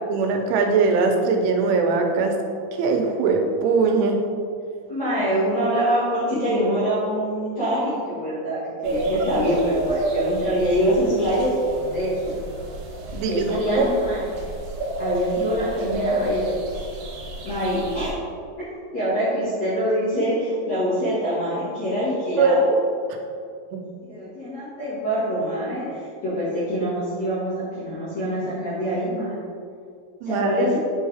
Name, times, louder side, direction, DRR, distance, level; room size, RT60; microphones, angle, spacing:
voice 1, 0.1-2.4 2.8-4.2 13.1-13.5 13.8-13.9 22.4-22.8 23.7-23.8 30.2-30.7, right 4 dB, 90° right, 3 dB, 3.2 m, -20 dB
voice 2, 4.9-11.6 11.9-12.3 13.3-14.2 15.0-16.4 17.4-18.2 18.6-18.7 18.9-22.7 24.0-27.5 27.8-29.4 30.2-30.7, equal, 50° left, -13 dB, 2.3 m, -24 dB
sound 1, 8.8-18.1, right 2 dB, 65° right, 2.5 m, -30 dB
7.9 x 5.5 x 3.4 m, 2.3 s
omnidirectional pair, 5.4 m